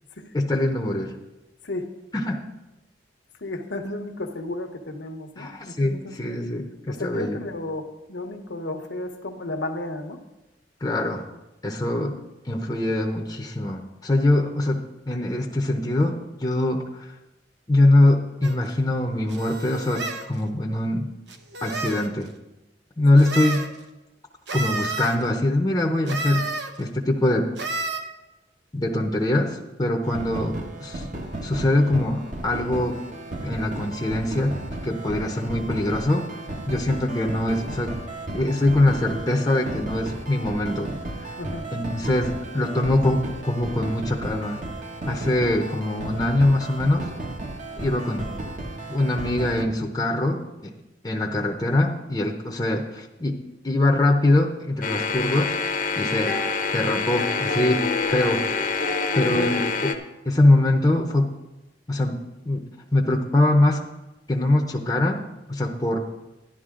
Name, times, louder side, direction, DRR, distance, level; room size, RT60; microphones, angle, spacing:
voice 1, 0.3-1.2 2.2-2.4 5.4-7.4 10.8-11.3 11.6-12.2 12.4-17.1 17.7-21.1 21.6-22.3 23.0-23.7 24.5-27.5 28.7-31.1 31.4-33.0 33.4-36.3 36.7-38.0 38.3-40.9 41.7-44.6 45.1-47.1 47.8-48.3 48.9-50.7 51.0-53.4 53.6-56.4 56.7-58.4 59.1-59.6 60.3-61.3 61.9-63.8 64.3-65.2 65.5-66.0, left 1 dB, 20° left, 1 dB, 0.8 m, -23 dB
voice 2, 3.4-6.1 6.9-10.2 23.1-23.2 41.4-41.7 59.2-59.5, left 2 dB, 80° left, 5 dB, 1.1 m, -33 dB
sound 1, 18.4-18.6 19.3-20.3 21.3-22.1 23.2-23.7 24.5-25.2 26.1-26.7 27.6-28.0, right 3 dB, 75° right, 1.0 m, -30 dB
sound 2, 30.0-49.6, right 1 dB, 45° right, 1.1 m, -34 dB
sound 3, 54.8-59.9, left 4 dB, 50° left, 0.9 m, -26 dB
11.5 x 11.0 x 3.8 m, 1.0 s
head